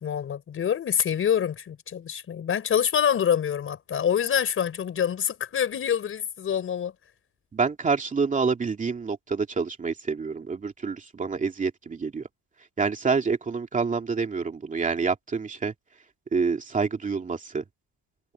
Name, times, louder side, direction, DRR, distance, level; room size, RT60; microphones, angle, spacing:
voice 1, 0.0-6.9, left 8 dB, 35° left, 4.7 m, -26 dB
voice 2, 7.5-12.3 12.8-15.7 16.3-17.6, right 5 dB, 20° right, 2.7 m, -27 dB
cardioid pair, 175°, 37 cm